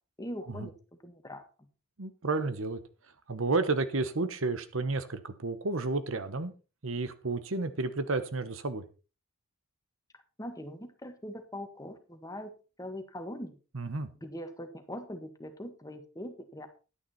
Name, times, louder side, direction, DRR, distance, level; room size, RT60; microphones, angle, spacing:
voice 1, 0.2-0.7 1.0-1.4 10.4-12.5 12.8-13.5 14.2-16.7, equal, 15° left, 7 dB, 1.5 m, -41 dB
voice 2, 2.0-2.8 3.3-6.5 6.8-8.8 13.7-14.1, right 3 dB, 65° right, 11 dB, 1.1 m, -31 dB
11.0 x 9.6 x 4.2 m, 0.34 s
head